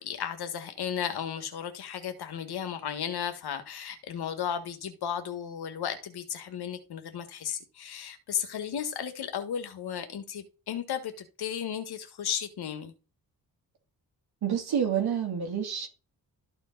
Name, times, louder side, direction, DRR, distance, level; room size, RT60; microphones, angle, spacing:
voice 1, 0.0-12.9, left 8 dB, 80° left, 1.7 m, -34 dB
voice 2, 14.4-15.9, right 8 dB, 80° right, 2.8 m, -28 dB
13.0 x 4.6 x 4.0 m
wide cardioid pair, 125°, 38 cm